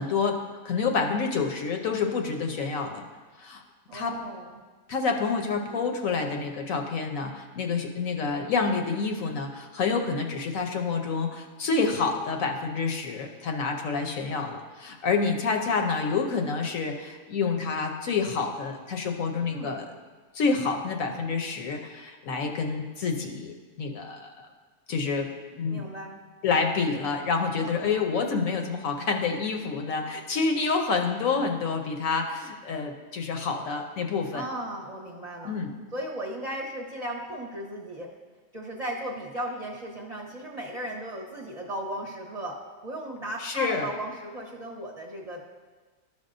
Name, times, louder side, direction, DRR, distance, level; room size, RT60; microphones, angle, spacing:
voice 1, 0.0-3.1 3.4-3.6 3.9-4.2 4.9-19.9 20.3-24.3 24.9-25.8 26.4-34.5 35.4-35.7 43.4-43.9, left 4 dB, 70° left, 4 dB, 1.0 m, -28 dB
voice 2, 3.9-4.6 19.5-19.9 25.7-26.2 27.6-28.1 34.3-35.6 35.9-38.1 38.5-45.4, right 1 dB, 30° right, -3 dB, 0.9 m, -36 dB
13.0 x 5.4 x 2.5 m, 1.4 s
omnidirectional pair, 1.5 m